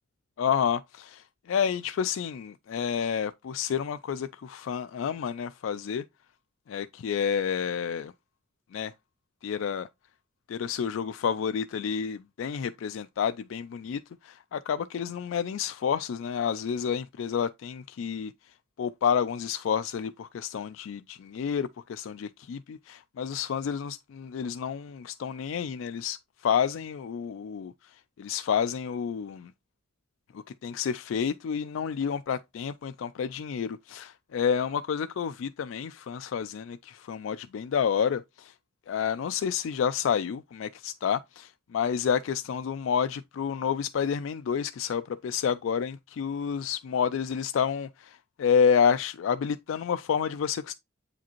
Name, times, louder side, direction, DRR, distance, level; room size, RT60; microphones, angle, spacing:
voice 1, 0.4-6.0 6.7-8.1 8.7-8.9 9.4-9.9 10.5-18.3 18.8-26.2 26.4-27.7 28.2-29.5 30.3-38.5 38.9-50.7, left 7 dB, 75° left, 0.3 m, -29 dB
8.1 x 4.9 x 2.9 m
head